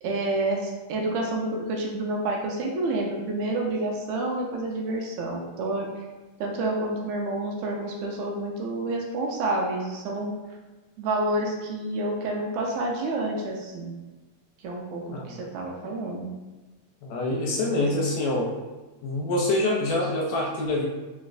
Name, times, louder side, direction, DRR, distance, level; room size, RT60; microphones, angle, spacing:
voice 1, 0.0-6.1 6.4-10.3 11.0-14.0 14.6-16.3 17.7-17.9, right 2 dB, 85° right, 0 dB, 1.9 m, -29 dB
voice 2, 17.0-18.5 19.0-20.9, left 2 dB, 80° left, -3 dB, 1.8 m, -25 dB
4.5 x 3.1 x 2.5 m, 1.2 s
omnidirectional pair, 3.3 m